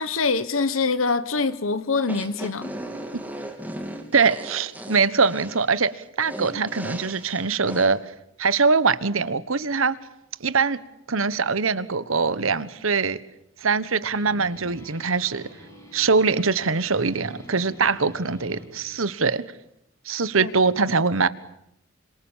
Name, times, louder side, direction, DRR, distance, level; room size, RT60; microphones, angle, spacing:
voice 1, 0.0-2.7 20.4-20.5, left 4 dB, 85° left, 1.2 m, -24 dB
sound 1, 2.0-7.9, right 1 dB, 10° right, 3.0 m, -37 dB
voice 2, 4.1-8.0 8.4-10.0 10.4-10.8 11.1-13.2 13.6-15.5 15.9-19.4 20.0-21.3, right 4 dB, 85° right, 1.2 m, -22 dB
sound 2, 14.1-19.1, equal, 15° left, 6.0 m, -46 dB
27.0 x 26.5 x 7.3 m
head